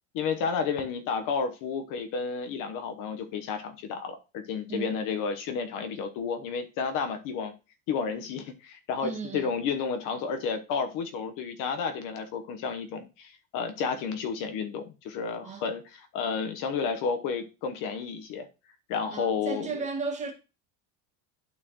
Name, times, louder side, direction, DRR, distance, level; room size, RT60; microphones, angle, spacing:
voice 1, 0.1-7.5 7.9-18.5 18.9-19.7, left 5 dB, 55° left, 1.0 m, -31 dB
voice 2, 4.7-5.0 9.0-9.5 15.4-15.6 19.1-20.3, right 4 dB, 20° right, 1.6 m, -34 dB
12.0 x 4.3 x 2.9 m
cardioid pair, 175°, 38 cm